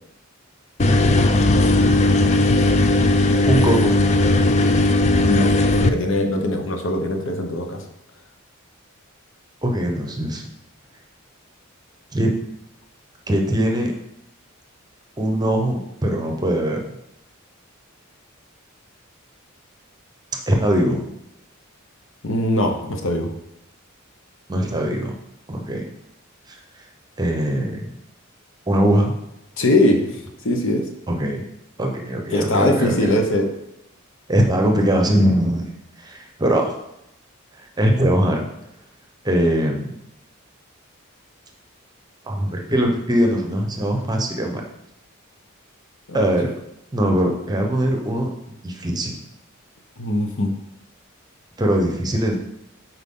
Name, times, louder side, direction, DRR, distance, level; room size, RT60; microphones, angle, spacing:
sound 1, 0.8-5.9, left 2 dB, 30° left, 0.4 m, -17 dB
voice 1, 3.5-3.9 9.6-10.5 12.1-12.3 13.3-13.9 15.2-16.8 20.5-21.0 24.5-25.2 25.5-25.9 26.5-26.6 27.2-27.9 28.7-29.1 31.1-31.4 31.8-33.0 34.3-35.7 36.0-36.7 37.8-38.5 39.2-39.9 42.2-44.6 46.1-46.5 46.9-48.3 48.6-49.1 51.6-52.4, right 1 dB, 20° right, 2 dB, 0.9 m, -21 dB
voice 2, 5.2-5.5 5.8-7.8 22.2-23.3 29.6-30.2 30.4-30.9 32.3-33.5 46.1-46.4 50.0-50.5, left 1 dB, 65° left, 4 dB, 0.9 m, -21 dB
8.1 x 4.5 x 3.7 m, 0.83 s
head